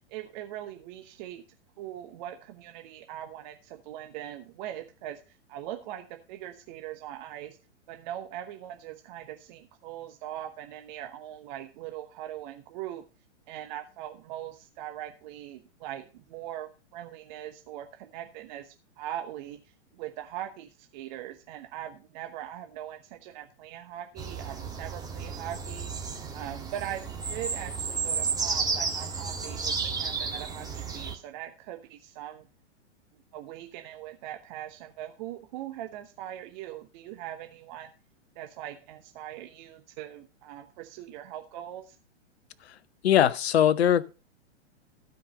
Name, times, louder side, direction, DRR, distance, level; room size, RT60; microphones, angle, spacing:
voice 1, 0.0-1.4 1.8-7.6 7.9-13.0 13.5-19.6 19.9-25.9 26.3-32.5 33.1-37.9 38.3-42.0, right 12 dB, 40° right, 1.1 m, -41 dB
sound 1, 24.2-31.1, right 5 dB, 10° right, 1.7 m, -32 dB
voice 2, 43.0-44.0, left 10 dB, 60° left, 0.8 m, -21 dB
15.0 x 5.2 x 5.2 m
figure-of-eight pair, 110°, 36 cm